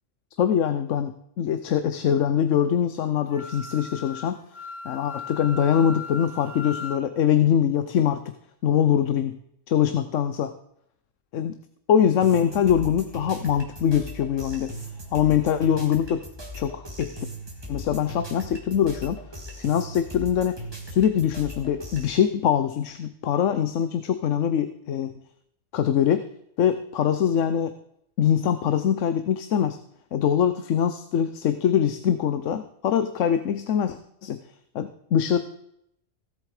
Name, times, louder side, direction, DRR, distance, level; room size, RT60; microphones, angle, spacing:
voice 1, 0.4-4.4 4.8-8.2 8.6-9.4 9.7-10.5 11.3-11.5 11.9-14.7 15.1-16.2 16.5-17.1 17.7-19.2 19.6-20.5 20.9-25.1 25.7-26.2 26.6-27.7 28.2-29.8 30.1-34.4 34.7-35.4, left 9 dB, 90° left, 11 dB, 1.1 m, -23 dB
Wind instrument woodwind instrument, 3.3-7.0, left 4 dB, 40° left, 1.3 m, -38 dB
sound 1, 12.2-22.1, equal, 20° right, 2.4 m, -39 dB
16.5 x 7.7 x 4.9 m, 0.73 s
omnidirectional pair, 1.3 m